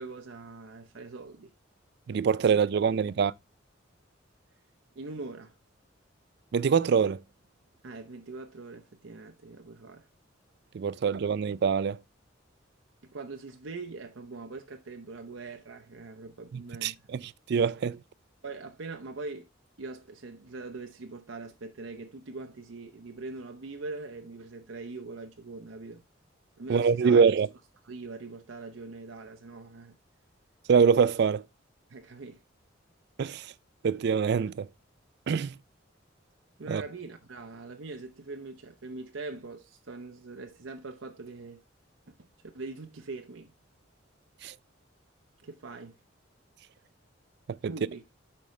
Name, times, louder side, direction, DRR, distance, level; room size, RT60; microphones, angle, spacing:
voice 1, 0.0-1.5 5.0-5.5 7.8-10.1 13.0-17.0 18.4-19.5 19.8-26.0 26.6-27.3 27.8-29.9 31.9-32.4 36.6-41.6 42.1-42.2 42.5-43.5 45.4-46.0 47.6-48.0, right 3 dB, 90° right, 0.8 m, -42 dB
voice 2, 2.1-3.3 6.5-7.2 10.7-12.0 16.5-18.0 26.7-27.5 30.7-31.4 33.2-33.5 33.8-34.7 35.3-35.5 36.7-36.8 44.4-44.5 47.6-47.7, right 6 dB, 60° right, 0.3 m, -24 dB
8.5 x 5.5 x 3.1 m
head